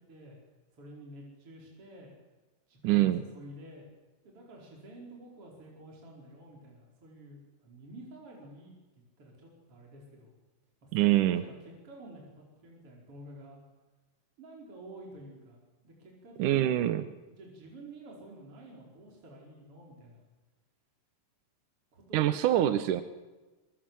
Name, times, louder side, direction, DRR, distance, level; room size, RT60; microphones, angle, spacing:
voice 1, 0.1-0.4 0.8-2.1 2.7-3.9 4.2-10.4 10.8-13.6 14.4-16.9 17.3-20.3 21.9-22.4, right 1 dB, 35° right, -2 dB, 5.6 m, -50 dB
voice 2, 2.8-3.2 10.9-11.4 16.4-17.0 22.1-23.0, right 13 dB, 70° right, 10 dB, 2.3 m, -25 dB
25.5 x 23.5 x 7.7 m, 1.2 s
omnidirectional pair, 4.2 m